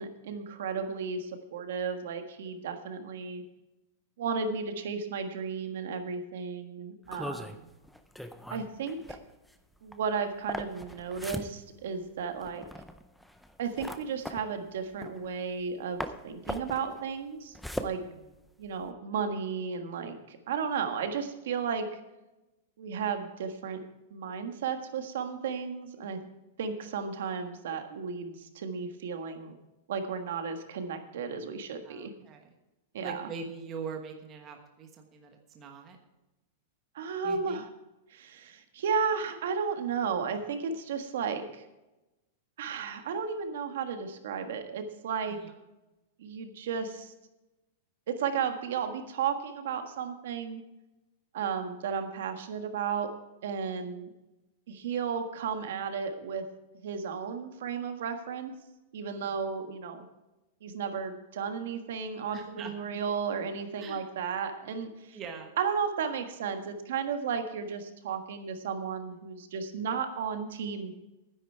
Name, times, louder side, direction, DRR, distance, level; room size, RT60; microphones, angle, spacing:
voice 1, 0.0-3.4 4.2-7.5 8.5-9.2 9.8-12.6 13.6-18.0 18.6-22.0 22.8-23.8 24.1-26.2 26.6-29.6 29.9-32.1 32.9-33.3 36.9-37.6 38.1-41.7 42.6-45.4 46.2-47.1 48.1-50.6 51.3-53.1 53.4-54.1 54.7-56.4 56.8-58.6 58.9-60.1 60.6-65.2 65.6-70.9, right 6 dB, 65° right, 7 dB, 1.5 m, -34 dB
sound 1, 7.1-15.7 16.0-18.9, equal, ahead, 0.5 m, -40 dB
voice 2, 7.2-7.7 18.0-18.3 31.8-32.5 33.0-36.0 37.2-37.6 45.3-45.5 59.2-59.3 62.3-62.7 63.7-64.0 65.1-65.5, right 5 dB, 20° right, 3 dB, 1.2 m, -43 dB
12.0 x 10.0 x 4.6 m, 1.0 s
supercardioid pair, 175°, 0 cm